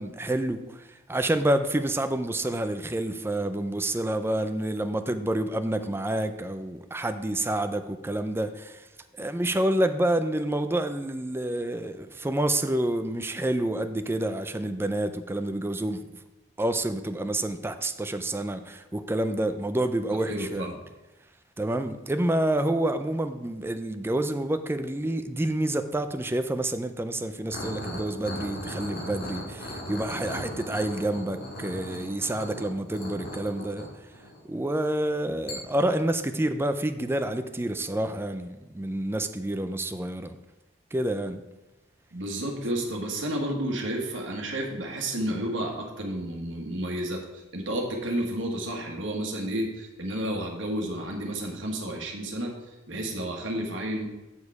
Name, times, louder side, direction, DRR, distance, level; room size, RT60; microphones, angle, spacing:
voice 1, 0.0-8.9 9.1-16.1 16.6-20.8 21.6-33.9 34.5-40.4 40.9-41.4, right 1 dB, 10° right, 9 dB, 0.4 m, -28 dB
voice 2, 20.3-20.7 42.1-47.2 47.5-52.5 52.9-54.1, right 1 dB, 70° right, 0 dB, 1.5 m, -31 dB
sound 1, 27.5-34.5 35.5-35.6, equal, 55° left, 1.9 m, -38 dB
7.1 x 6.5 x 4.8 m, 1.0 s
head